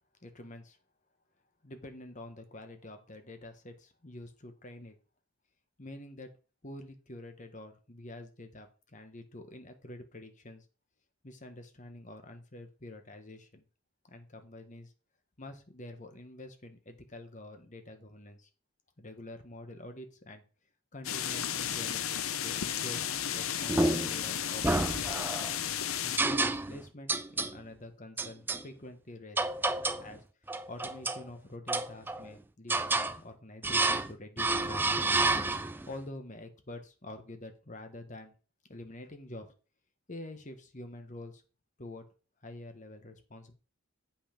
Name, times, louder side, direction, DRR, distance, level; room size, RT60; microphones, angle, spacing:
voice 1, 0.2-0.8 1.6-4.9 5.8-6.3 6.6-10.7 11.2-13.6 14.0-14.9 15.4-18.5 19.0-20.4 20.9-25.1 26.0-29.5 30.0-34.9 35.9-38.3 38.7-39.5 40.1-41.4 41.8-42.0 42.4-43.5, left 1 dB, 35° left, 7 dB, 1.3 m, -47 dB
sound 1, 21.0-26.2, left 9 dB, 70° left, 0.7 m, -33 dB
sound 2, 23.7-24.2 24.6-25.5 26.2-26.8 27.1-27.6 28.2-28.6 29.4-30.1 30.5-31.2 31.7-32.3 32.7-33.2 33.6-34.1 34.4-35.8, right 2 dB, 10° right, 0.3 m, -29 dB
8.1 x 5.7 x 5.1 m, 0.36 s
head